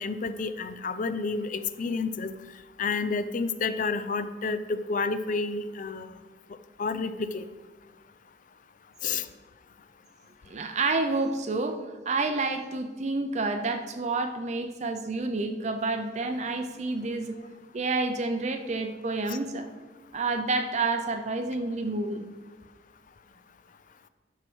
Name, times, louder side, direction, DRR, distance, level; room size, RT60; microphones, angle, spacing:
voice 1, 0.0-2.3 2.8-6.1 6.8-7.4 9.0-9.3, left 4 dB, 45° left, 12 dB, 0.4 m, -30 dB
voice 2, 10.5-17.4 17.7-19.7 20.1-22.3, right 3 dB, 40° right, 7 dB, 0.5 m, -29 dB
11.0 x 4.5 x 6.2 m, 1.4 s
head